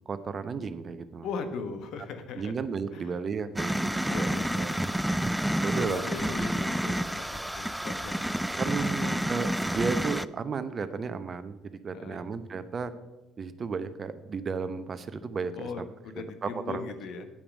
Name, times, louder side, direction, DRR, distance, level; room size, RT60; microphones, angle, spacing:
voice 1, 0.1-1.3 2.4-4.3 4.6-4.7 5.6-6.0 8.6-12.9 13.4-15.8 16.4-16.8, right 5 dB, 40° right, 11 dB, 0.8 m, -33 dB
voice 2, 1.2-2.5 2.9-3.1 4.1-4.7 5.7-8.4 8.8-9.3 11.9-12.3 15.5-17.3, left 5 dB, 60° left, 8 dB, 1.2 m, -39 dB
sound 1, 3.6-10.3, right 1 dB, 5° right, 0.4 m, -29 dB
10.0 x 8.9 x 5.3 m, 1.0 s
hypercardioid pair, 50°, 0 cm